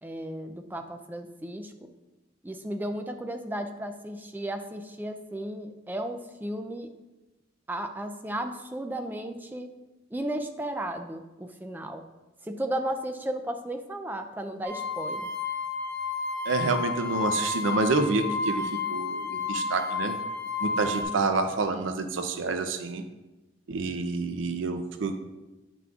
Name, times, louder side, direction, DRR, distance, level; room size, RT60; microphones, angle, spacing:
voice 1, 0.0-1.9 2.4-6.9 7.7-9.7 10.1-12.1 12.4-15.3, right 1 dB, 10° right, 6 dB, 0.4 m, -34 dB
sound 1, 14.6-21.0, left 4 dB, 40° right, 1.1 m, -31 dB
voice 2, 16.5-20.2 20.6-23.0 23.7-25.1, right 3 dB, 80° right, 7 dB, 0.5 m, -28 dB
9.0 x 6.0 x 2.4 m, 1.1 s
head